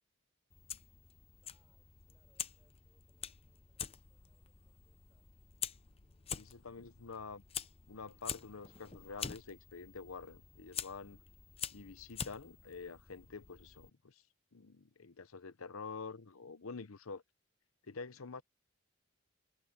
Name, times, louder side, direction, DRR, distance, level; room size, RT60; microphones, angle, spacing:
Fire, 0.5-13.9, left 8 dB, 30° left, 0.6 m, -46 dB
voice 1, 1.4-5.3 6.1-6.6, right 1 dB, 15° right, 7.0 m, -80 dB
voice 2, 6.3-7.4 7.9-11.2 11.7-14.2 14.5-17.2 17.9-18.4, left 4 dB, 90° left, 0.9 m, -47 dB
head